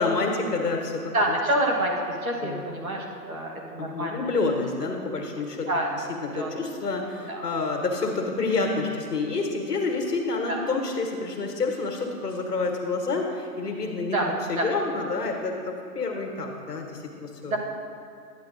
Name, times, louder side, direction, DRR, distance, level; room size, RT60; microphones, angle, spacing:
voice 1, 0.0-1.4 2.4-2.6 3.8-5.7 6.2-14.2 14.5-17.6, left 3 dB, 70° left, 1 dB, 1.4 m, -28 dB
voice 2, 1.1-4.3 5.7-5.9 6.3-6.6 7.3-7.4 10.5-10.7 14.1-14.3 14.6-14.7 17.5-17.6, right 1 dB, 60° right, 0 dB, 1.3 m, -27 dB
10.5 x 8.3 x 2.5 m, 2.5 s
hypercardioid pair, 180°, 49 cm